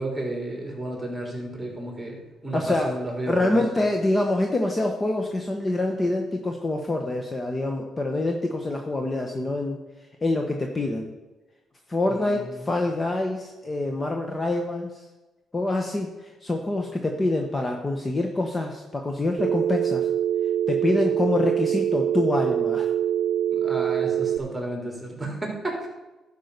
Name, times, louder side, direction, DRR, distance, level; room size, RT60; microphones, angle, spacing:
voice 1, 0.0-2.2 2.4-3.6 12.0-12.7 23.5-25.9, right 1 dB, 10° right, 0 dB, 3.7 m, -32 dB
voice 2, 2.5-2.9 3.3-9.8 10.2-11.1 11.9-14.9 15.5-20.1 20.7-22.9, left 2 dB, 25° left, 3 dB, 1.1 m, -26 dB
Telephone, 19.4-24.4, right 10 dB, 60° right, 0.7 m, -24 dB
11.5 x 5.4 x 6.7 m, 1.1 s
cardioid pair, 90°, 0 cm